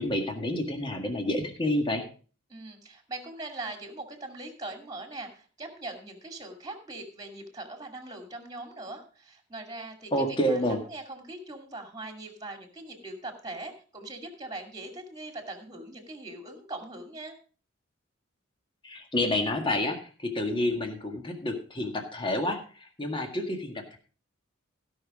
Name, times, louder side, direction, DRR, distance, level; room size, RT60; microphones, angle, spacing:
voice 1, 0.0-2.0 10.1-10.8 18.8-24.0, left 1 dB, 25° left, 4 dB, 1.8 m, -29 dB
voice 2, 2.5-17.4, right 2 dB, 20° right, 5 dB, 2.4 m, -41 dB
16.0 x 6.0 x 4.8 m, 0.38 s
head